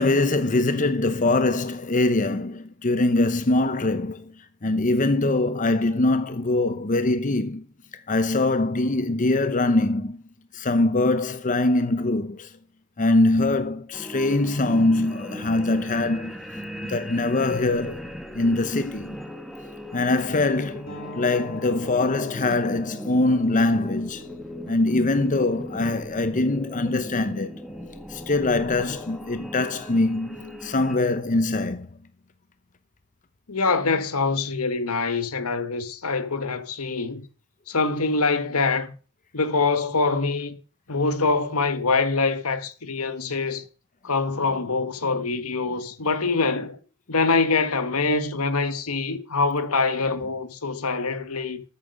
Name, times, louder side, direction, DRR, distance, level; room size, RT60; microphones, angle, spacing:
voice 1, 0.0-4.3 4.6-7.6 8.1-10.2 10.5-12.5 13.0-16.4 16.8-18.0 18.3-19.2 19.9-24.2 24.7-27.6 28.1-31.9, left 2 dB, 35° left, 0.8 m, -23 dB
sound 1, 13.9-31.0, equal, ahead, 1.4 m, -38 dB
sound 2, 20.9-26.1, left 1 dB, 60° left, 3.9 m, -44 dB
voice 2, 33.5-37.2 37.7-38.9 39.3-40.6 40.9-43.6 44.0-46.8 47.1-51.6, left 4 dB, 80° left, 1.4 m, -24 dB
13.0 x 8.7 x 5.4 m
head